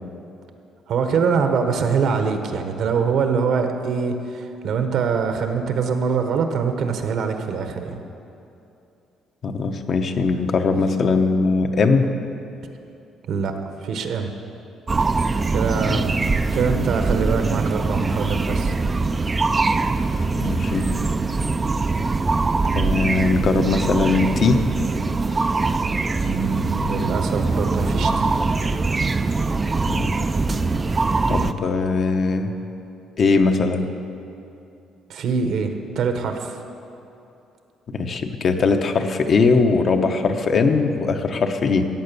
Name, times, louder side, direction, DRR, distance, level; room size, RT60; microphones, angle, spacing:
voice 1, 0.9-8.0 13.3-13.6 13.8-14.3 15.5-18.7 20.4-20.5 26.2-28.3 35.1-36.6, right 5 dB, 65° right, 6 dB, 1.3 m, -24 dB
voice 2, 9.4-12.1 15.8-16.0 20.4-20.9 22.7-24.6 29.9-30.1 31.3-32.5 33.2-33.9 37.9-41.8, left 4 dB, 45° left, 5 dB, 1.0 m, -20 dB
sound 1, 14.9-31.5, right 3 dB, 20° right, 0.5 m, -22 dB
15.0 x 8.8 x 6.9 m, 2.7 s
cardioid pair, 120°, 0 cm